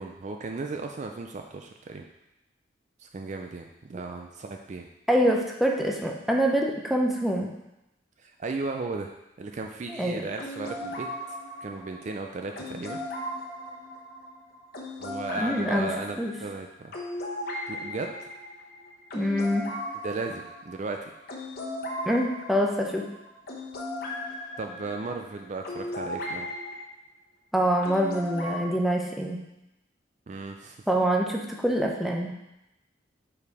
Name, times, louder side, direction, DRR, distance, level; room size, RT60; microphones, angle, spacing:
voice 1, 0.0-2.1 3.0-4.9 8.2-9.1 9.4-13.0 15.0-16.9 17.7-18.3 20.0-21.1 24.6-26.5 30.3-30.8, right 3 dB, 40° right, 4 dB, 0.4 m, -35 dB
voice 2, 5.1-7.5 9.9-10.2 15.4-16.3 19.1-19.7 22.0-23.0 27.5-29.4 30.9-32.4, equal, ahead, 0 dB, 0.6 m, -25 dB
sound 1, 10.4-26.7 27.8-28.6, left 1 dB, 50° left, 1.0 m, -37 dB
5.3 x 4.7 x 4.7 m, 0.90 s
head